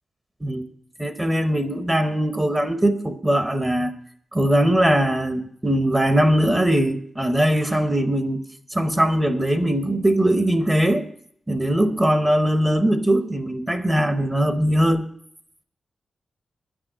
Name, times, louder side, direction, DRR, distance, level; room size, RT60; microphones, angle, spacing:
voice 1, 1.0-3.9 4.3-8.4 8.7-11.0 11.5-15.1, right 1 dB, 10° right, 0.7 m, -20 dB
10.5 x 6.2 x 8.8 m
wide cardioid pair, 155°, 0 cm